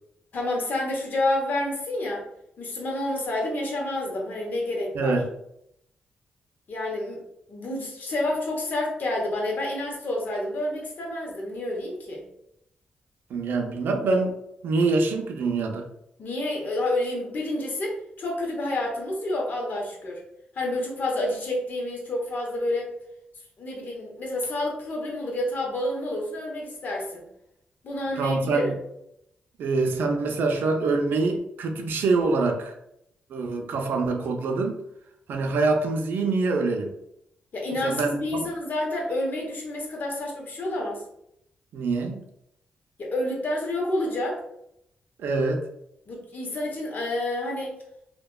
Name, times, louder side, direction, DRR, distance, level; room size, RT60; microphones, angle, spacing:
voice 1, 0.3-2.2 2.6-5.1 6.7-7.2 7.5-12.2 16.2-20.2 20.5-22.9 23.6-27.3 27.8-28.7 37.5-41.0 43.0-44.4 46.1-47.7, left 1 dB, 60° left, -1 dB, 0.9 m, -29 dB
voice 2, 5.0-5.3 13.3-14.3 14.6-15.8 28.2-28.7 29.6-32.7 33.3-34.8 35.3-36.9 37.8-38.5 41.7-42.2 45.2-45.6, right 3 dB, 75° right, 3 dB, 0.4 m, -25 dB
2.7 x 2.2 x 2.2 m, 0.77 s
cardioid pair, 70°, 3 cm